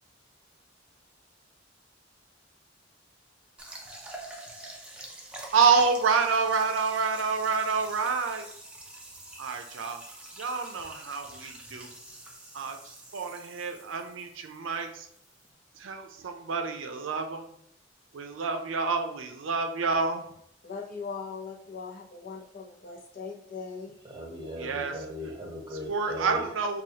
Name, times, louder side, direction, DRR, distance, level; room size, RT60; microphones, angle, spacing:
sound 1, 3.6-15.5, right 1 dB, 5° right, 0.5 m, -46 dB
voice 1, 5.5-8.5 9.4-10.0 10.4-11.9 12.5-15.1 15.8-17.5 18.1-20.3 24.5-24.9 25.9-26.8, right 5 dB, 85° right, 5 dB, 0.5 m, -28 dB
voice 2, 20.6-24.0, left 5 dB, 45° left, 0 dB, 0.6 m, -40 dB
voice 3, 24.0-26.4, left 1 dB, 20° right, -2 dB, 1.1 m, -38 dB
4.7 x 2.4 x 2.8 m, 0.71 s
head